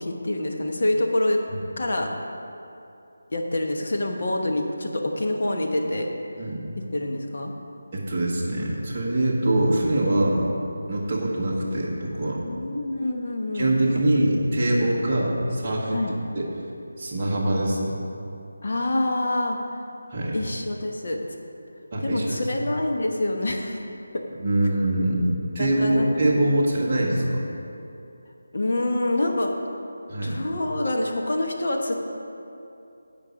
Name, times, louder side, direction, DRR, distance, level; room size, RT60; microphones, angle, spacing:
voice 1, 0.0-1.4 1.8-2.1 3.3-6.1 6.9-7.5 12.5-13.7 13.9-14.0 15.9-16.1 18.6-19.6 20.3-21.2 22.0-23.8 25.6-26.1 28.5-29.5 30.2-32.1, left 1 dB, 40° left, 1 dB, 1.1 m, -26 dB
voice 2, 7.9-10.4 10.9-12.4 13.5-16.0 16.3-16.4 17.0-17.9 20.1-20.4 21.9-22.5 24.4-27.4 30.1-30.4, right 1 dB, 15° right, -9 dB, 1.2 m, -23 dB
15.5 x 5.2 x 5.1 m, 2.7 s
figure-of-eight pair, 180°, 0 cm